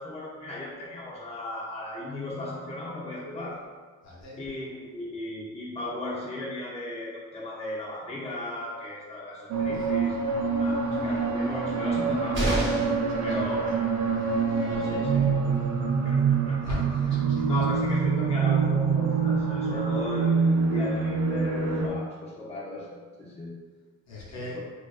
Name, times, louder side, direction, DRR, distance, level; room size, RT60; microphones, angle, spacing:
voice 1, 0.0-3.6 4.4-12.7 13.2-14.1 14.6-15.3 16.0-16.8 17.5-23.5 24.5-24.6, left 2 dB, 20° left, -6 dB, 0.6 m, -36 dB
voice 2, 4.0-4.4 9.7-9.9 13.0-13.4 14.1-14.9 16.6-17.5 24.1-24.6, left 1 dB, 60° left, -4 dB, 0.8 m, -39 dB
sound 1, 9.5-21.9, right 5 dB, 65° right, 0.4 m, -25 dB
sound 2, 12.3-13.1 15.0-15.1 15.4-15.5, right 1 dB, 40° right, 0.8 m, -28 dB
2.5 x 2.3 x 2.3 m, 1.4 s
cardioid pair, 90°, 30 cm